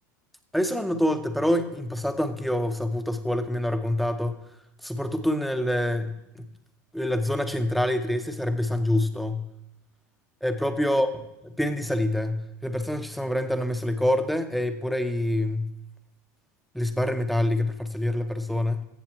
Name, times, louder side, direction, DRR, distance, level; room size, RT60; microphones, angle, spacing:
voice 1, 0.5-4.4 4.8-6.5 6.9-9.5 10.4-11.1 11.6-15.7 16.7-18.8, left 1 dB, ahead, 8 dB, 0.9 m, -26 dB
15.0 x 7.3 x 4.6 m, 0.87 s
supercardioid pair, 120°, 10 cm